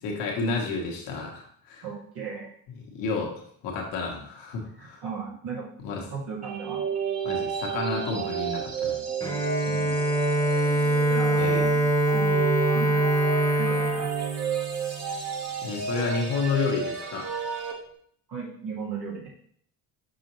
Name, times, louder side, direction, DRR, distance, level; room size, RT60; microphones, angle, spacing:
voice 1, 0.0-1.8 2.9-3.3 3.6-5.0 5.8-6.0 7.2-9.0 11.3-11.7 15.6-17.3, left 4 dB, 90° left, -1 dB, 1.3 m, -30 dB
voice 2, 1.8-2.5 4.7-5.7 6.1-6.8 9.6-9.9 10.5-10.7 11.1-11.8 12.1-12.9 13.6-14.1 18.3-19.3, right 5 dB, 75° right, -5 dB, 2.1 m, -36 dB
sound 1, 6.4-17.7, right 6 dB, 40° right, 1.3 m, -32 dB
Bowed string instrument, 9.2-15.2, right 2 dB, 10° left, 1.1 m, -24 dB
6.1 x 5.0 x 3.1 m, 0.63 s
supercardioid pair, 80°, 40 cm